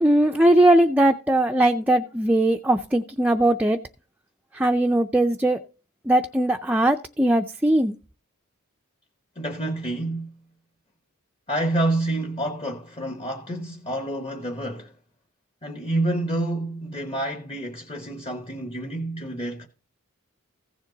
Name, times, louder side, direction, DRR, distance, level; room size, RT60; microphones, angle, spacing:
voice 1, 0.0-3.8 4.5-5.6 6.1-7.9, right 1 dB, 5° right, 0.4 m, -20 dB
voice 2, 9.3-10.3 11.5-14.9 15.6-19.7, right 1 dB, 25° left, 1.0 m, -28 dB
15.5 x 7.3 x 3.9 m
head